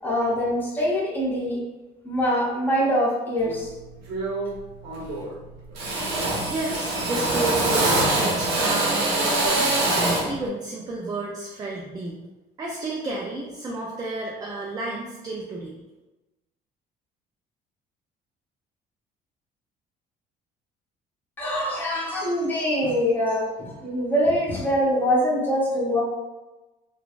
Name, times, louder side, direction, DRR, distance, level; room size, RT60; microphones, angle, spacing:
voice 1, 0.0-1.6 2.0-3.7 21.4-26.0, equal, 10° left, -5 dB, 0.9 m, -24 dB
Drill, 3.4-3.7 4.1-4.6 4.8-5.4 5.7-10.4, right 2 dB, 85° right, 1.0 m, -24 dB
voice 2, 6.5-12.2 12.6-15.8, right 2 dB, 20° right, -2 dB, 0.4 m, -31 dB
3.1 x 2.2 x 2.4 m, 1.1 s
cardioid pair, 110°, 17 cm